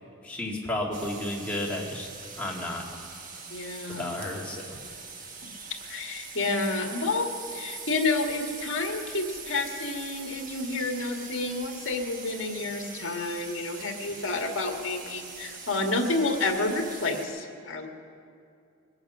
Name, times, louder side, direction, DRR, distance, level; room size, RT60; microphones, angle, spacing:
voice 1, 0.2-2.1 2.4-2.8 4.0-4.8, left 1 dB, 5° left, -4 dB, 1.9 m, -32 dB
sound 1, 0.9-17.3, right 5 dB, 40° right, 1.2 m, -42 dB
voice 2, 3.5-4.1 5.7-17.9, left 3 dB, 60° left, 3 dB, 1.7 m, -30 dB
21.5 x 8.9 x 6.0 m, 2.4 s
head